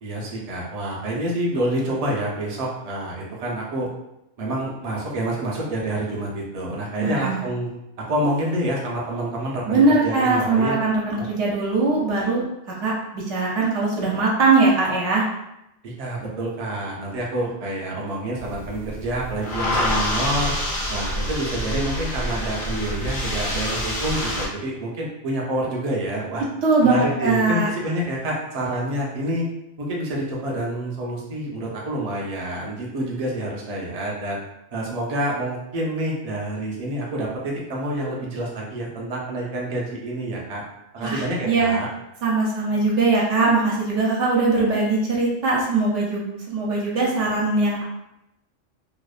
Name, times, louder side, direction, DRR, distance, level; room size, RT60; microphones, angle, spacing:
voice 1, 0.0-3.9 4.4-7.8 8.1-10.8 11.2-11.3 15.8-20.5 20.9-26.4 26.8-29.5 29.8-34.4 34.7-40.6 40.9-41.9, right 1 dB, 45° right, -3 dB, 0.5 m, -27 dB
voice 2, 7.0-7.4 9.7-12.4 12.8-15.2 26.6-27.7 41.0-41.8 42.2-47.8, right 3 dB, 75° right, -3 dB, 0.9 m, -21 dB
sound 1, 18.4-24.5, left 1 dB, 60° left, 0.6 m, -27 dB
2.8 x 2.0 x 2.3 m, 0.86 s
omnidirectional pair, 1.3 m